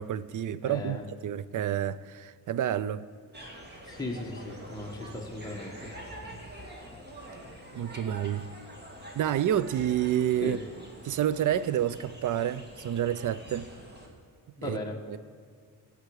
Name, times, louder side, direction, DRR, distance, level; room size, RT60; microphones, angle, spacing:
voice 1, 0.0-3.1 7.7-8.5 9.2-10.6 11.0-13.7 14.6-14.8 15.1-15.2, right 10 dB, 55° right, 0.5 m, -29 dB
voice 2, 0.6-1.0 3.8-5.7 10.4-10.6 14.6-15.0, left 2 dB, 10° left, 1.3 m, -37 dB
sound 1, 3.3-14.1, right 1 dB, 25° right, 2.2 m, -46 dB
16.5 x 8.1 x 4.8 m
cardioid pair, 110°, 39 cm